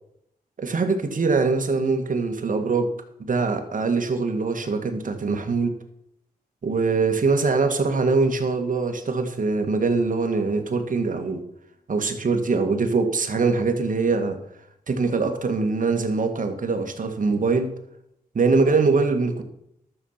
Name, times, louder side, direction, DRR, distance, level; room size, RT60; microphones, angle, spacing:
voice 1, 0.6-2.9 3.2-5.8 6.6-11.4 11.9-14.4 14.9-17.7 18.3-19.4, right 4 dB, 60° right, 6 dB, 2.0 m, -23 dB
12.0 x 7.3 x 5.8 m, 0.75 s
cardioid pair, 60°, 15 cm